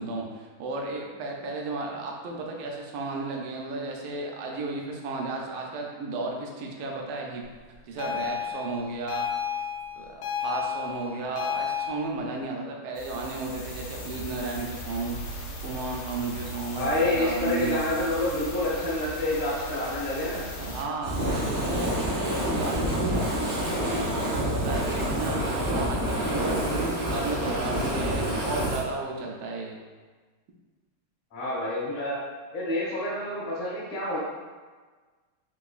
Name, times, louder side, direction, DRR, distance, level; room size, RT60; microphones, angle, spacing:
voice 1, 0.0-7.4 7.9-9.3 10.0-15.4 15.6-17.8 20.6-29.8, right 3 dB, 85° right, 0 dB, 1.5 m, -34 dB
sound 1, 8.0-11.9, left 8 dB, 85° left, 1.5 m, -31 dB
sound 2, 12.9-20.8, equal, 70° left, 1.1 m, -38 dB
voice 2, 16.8-20.4 31.3-32.1 32.5-34.2, left 1 dB, 30° left, -8 dB, 0.9 m, -28 dB
Fire, 21.0-28.8, equal, 50° right, 0.8 m, -27 dB
3.9 x 2.9 x 2.3 m, 1.4 s
omnidirectional pair, 2.3 m